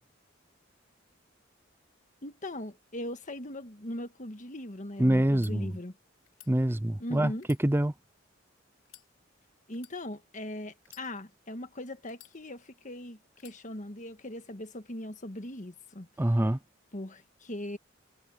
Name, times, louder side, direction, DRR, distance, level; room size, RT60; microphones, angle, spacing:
voice 1, 2.2-5.9 7.0-7.4 9.7-16.1 16.9-17.8, left 1 dB, 40° left, 1.7 m, -40 dB
voice 2, 5.0-5.7 6.5-7.3 7.6-7.9 16.2-16.6, right 1 dB, 10° right, 0.5 m, -25 dB
sound 1, 5.4-5.5 6.2-6.5 7.3-8.3 8.8-9.1 9.7-10.0 10.8-11.5 12.1-12.8 13.4-13.6, left 13 dB, 85° left, 3.3 m, -55 dB
head